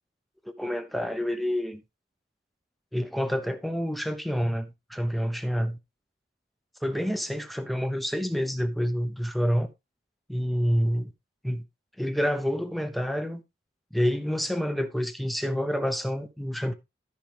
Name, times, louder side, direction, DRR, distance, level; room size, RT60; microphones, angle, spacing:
voice 1, 0.6-1.8 2.9-5.8 6.8-9.7 10.3-11.1 11.4-11.6 12.0-13.4 13.9-16.7, equal, ahead, 0.8 m, -28 dB
13.5 x 5.2 x 3.4 m
head